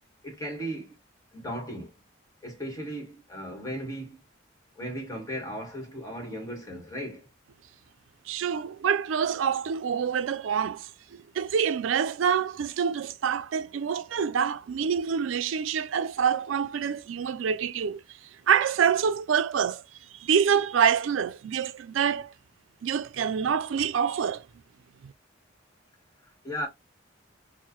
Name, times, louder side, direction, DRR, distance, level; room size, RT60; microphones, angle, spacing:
voice 1, 0.2-1.0 1.3-1.9 2.4-4.2 4.8-7.3 26.4-26.7, equal, 20° left, 1.3 m, -36 dB
voice 2, 8.3-18.0 18.5-19.8 20.2-22.3 22.8-24.5 25.0-25.1, right 7 dB, 85° right, 0.4 m, -26 dB
4.5 x 2.1 x 2.9 m
head